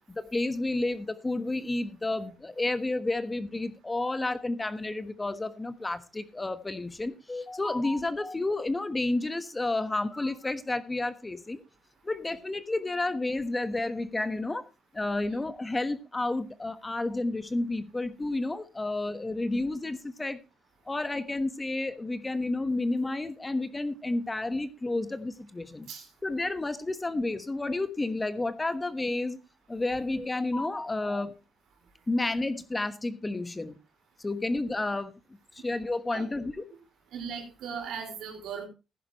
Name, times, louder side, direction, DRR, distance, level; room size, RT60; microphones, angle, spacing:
voice 1, 0.0-11.6 12.0-14.7 14.9-20.4 20.9-25.9 26.2-29.4 29.7-31.3 32.1-33.8 34.2-35.1 35.5-36.6, left 2 dB, 20° left, 11 dB, 1.2 m, -31 dB
voice 2, 37.1-38.6, right 6 dB, 80° right, 4 dB, 4.2 m, -38 dB
15.5 x 10.5 x 3.0 m, 0.27 s
cardioid pair, 90°, 0 cm